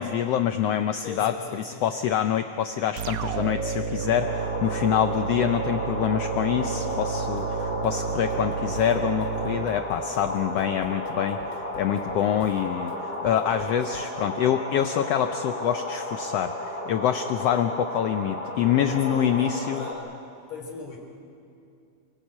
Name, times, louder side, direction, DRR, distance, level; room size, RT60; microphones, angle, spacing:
voice 1, 0.0-19.9, left 10 dB, 80° left, 8 dB, 1.4 m, -26 dB
voice 2, 1.0-1.8 18.8-20.1 20.5-21.0, left 4 dB, 60° left, 0 dB, 4.6 m, -39 dB
sound 1, 3.0-10.5, right 6 dB, 75° right, 2.3 m, -31 dB
sound 2, 4.2-19.9, left 1 dB, 20° left, 3.3 m, -33 dB
Drum kit / Drum, 6.9-14.2, left 1 dB, 40° left, 2.1 m, -48 dB
27.0 x 17.0 x 8.6 m, 2.6 s
omnidirectional pair, 3.5 m